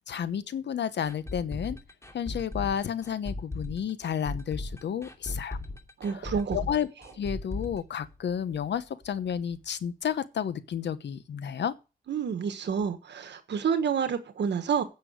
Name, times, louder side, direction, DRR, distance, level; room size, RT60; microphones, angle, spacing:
voice 1, 0.1-1.8 2.1-5.6 6.2-6.3 6.5-6.9 7.2-11.7, left 8 dB, 90° left, 1.0 m, -31 dB
sound 1, 1.0-8.8 9.0-9.1 9.5-9.6, left 2 dB, 15° left, 2.6 m, -37 dB
voice 2, 6.0-6.6 12.1-14.8, right 7 dB, 90° right, 1.4 m, -28 dB
9.7 x 6.9 x 7.9 m
cardioid pair, 70°, 18 cm